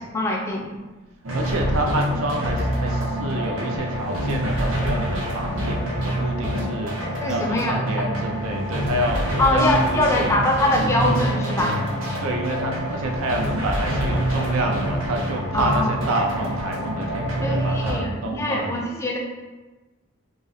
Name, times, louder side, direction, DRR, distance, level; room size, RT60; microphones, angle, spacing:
voice 1, 0.1-0.7 7.2-7.9 9.4-11.8 15.5-16.0 17.4-19.2, left 1 dB, 15° left, -1 dB, 0.4 m, -23 dB
sound 1, 1.2-17.9, equal, 70° right, 0.9 m, -26 dB
voice 2, 1.3-7.0 7.3-9.2 9.5-10.3 12.2-18.8, right 1 dB, 85° right, 2 dB, 0.5 m, -28 dB
2.5 x 2.4 x 4.0 m, 1.2 s
head